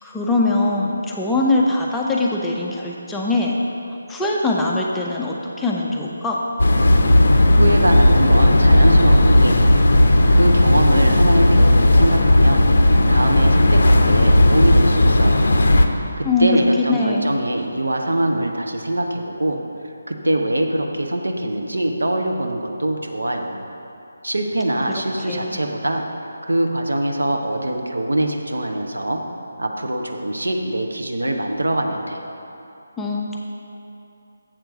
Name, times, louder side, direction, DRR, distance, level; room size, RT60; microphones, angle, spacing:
voice 1, 0.0-3.6 4.1-6.4 16.2-17.3 24.9-25.0 25.3-25.5 33.0-33.4, left 2 dB, 5° left, -3 dB, 0.4 m, -21 dB
sound 1, 6.6-15.9, left 1 dB, 55° left, 0.5 m, -14 dB
voice 2, 7.6-9.8 10.3-12.6 13.1-15.5 16.2-19.6 20.1-23.6 24.2-26.0 26.4-29.2 29.6-32.4, right 1 dB, 70° right, 3 dB, 0.8 m, -23 dB
7.5 x 4.5 x 6.6 m, 2.8 s
figure-of-eight pair, 150°, 0 cm